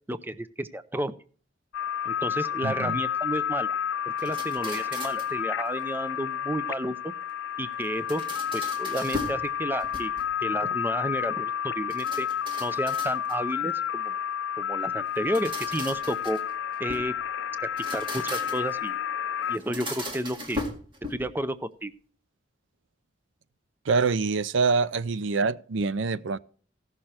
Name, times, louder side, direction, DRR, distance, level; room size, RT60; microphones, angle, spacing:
voice 1, 0.1-1.2 2.1-3.8 4.2-7.1 7.6-8.2 8.5-10.1 10.4-12.3 12.6-14.2 14.6-16.4 16.8-17.1 17.6-19.0 19.5-20.7 21.1-21.9, right 1 dB, 10° right, 0.5 m, -32 dB
sound 1, 1.7-19.6, left 9 dB, 80° left, 0.4 m, -30 dB
voice 2, 2.6-3.0 23.9-26.4, right 4 dB, 90° right, 0.5 m, -25 dB
sound 2, 4.2-5.4 7.8-9.5 9.8-10.4 11.9-13.5 15.1-17.1 17.7-18.8 19.5-21.4, left 1 dB, 25° right, 2.0 m, -38 dB
16.0 x 6.6 x 4.3 m
head